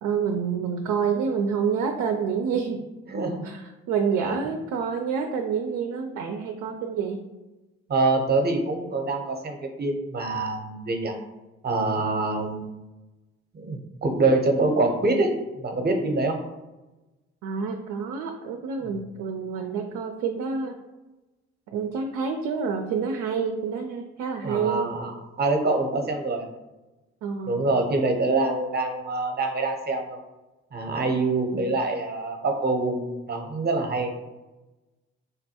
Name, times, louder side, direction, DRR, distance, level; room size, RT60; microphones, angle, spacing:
voice 1, 0.0-2.8 3.4-7.2 17.4-20.8 21.7-24.9 27.2-27.6, right 6 dB, 70° right, 4 dB, 0.4 m, -28 dB
voice 2, 3.1-3.4 4.2-4.3 7.9-11.2 11.6-12.7 13.5-15.3 15.6-16.4 24.4-26.5 27.5-30.2 30.7-34.1, right 2 dB, 30° right, 3 dB, 0.7 m, -25 dB
3.6 x 2.2 x 2.8 m, 1.1 s
hypercardioid pair, 55°, 31 cm